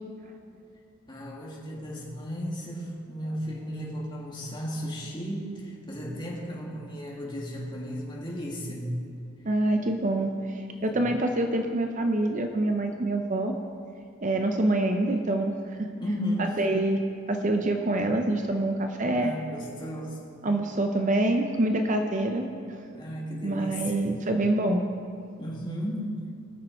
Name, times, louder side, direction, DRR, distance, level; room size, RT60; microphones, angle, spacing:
voice 1, 1.1-8.9 10.9-11.0 16.0-16.6 19.1-20.2 22.9-24.0 25.4-26.3, equal, 20° left, -3 dB, 1.8 m, -34 dB
voice 2, 9.4-13.5 14.2-15.5 16.4-17.0 17.3-19.4 20.4-22.8 23.4-24.8, right 1 dB, 35° right, 4 dB, 0.6 m, -26 dB
20.0 x 6.7 x 4.4 m, 2.4 s
head